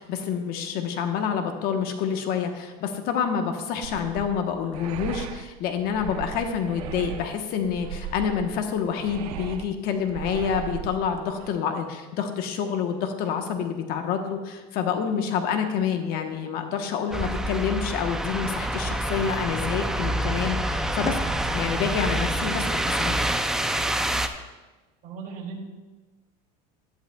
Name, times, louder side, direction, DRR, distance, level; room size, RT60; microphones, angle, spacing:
voice 1, 0.0-21.2 21.5-23.2, left 7 dB, 55° left, 5 dB, 1.1 m, -28 dB
sound 1, 3.8-11.5, right 10 dB, 85° right, 0.7 m, -37 dB
sound 2, 17.1-24.3, right 1 dB, 5° right, 0.4 m, -27 dB
voice 2, 25.0-25.6, right 5 dB, 45° right, -2 dB, 2.4 m, -37 dB
14.0 x 11.5 x 2.3 m, 1.2 s
cardioid pair, 145°, 19 cm